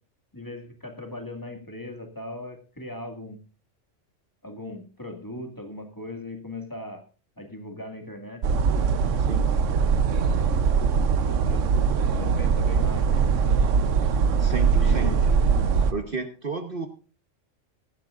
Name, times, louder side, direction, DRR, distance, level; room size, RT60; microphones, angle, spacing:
voice 1, 0.3-3.4 4.4-7.0 7.4-8.4 11.2-13.2 14.8-15.3, left 2 dB, 15° left, 4 dB, 2.0 m, -38 dB
sound 1, 8.4-15.9, right 6 dB, 75° right, 1.2 m, -22 dB
voice 2, 9.2-9.5 14.4-15.1 15.9-16.9, right 4 dB, 45° right, 6 dB, 1.2 m, -32 dB
18.0 x 12.0 x 2.5 m, 0.35 s
omnidirectional pair, 1.3 m